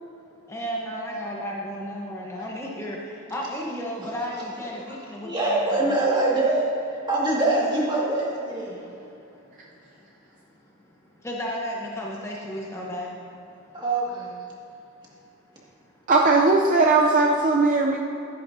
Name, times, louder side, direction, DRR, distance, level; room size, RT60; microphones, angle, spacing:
voice 1, 0.5-6.1 8.6-10.0 11.2-13.1, equal, 10° left, -3 dB, 0.9 m, -34 dB
voice 2, 5.2-6.7 6.9-8.8 13.7-14.4, right 2 dB, 20° right, -5 dB, 1.9 m, -24 dB
voice 3, 16.1-18.0, right 3 dB, 35° right, 0 dB, 0.5 m, -18 dB
13.5 x 10.0 x 2.7 m, 2.8 s
head